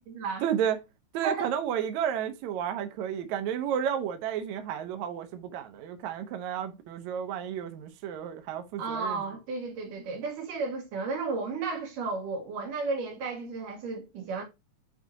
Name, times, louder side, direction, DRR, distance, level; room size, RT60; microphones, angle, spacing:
voice 1, 0.4-0.8 1.1-9.2, right 9 dB, 70° right, 2.0 m, -32 dB
voice 2, 8.8-14.4, right 4 dB, 90° right, 3.4 m, -33 dB
8.4 x 4.2 x 2.7 m
omnidirectional pair, 3.7 m